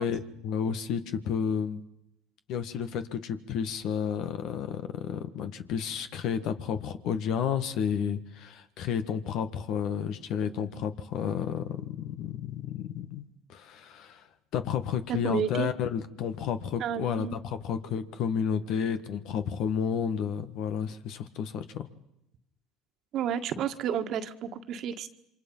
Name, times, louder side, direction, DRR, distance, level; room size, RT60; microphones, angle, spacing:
voice 1, 0.0-1.8 2.5-14.3 14.5-21.9, left 7 dB, 65° left, 10 dB, 1.8 m, -31 dB
voice 2, 15.1-15.7 16.8-17.4 23.1-25.1, right 8 dB, 55° right, 8 dB, 1.7 m, -31 dB
28.5 x 25.0 x 5.7 m, 0.82 s
supercardioid pair, 85°, 0 cm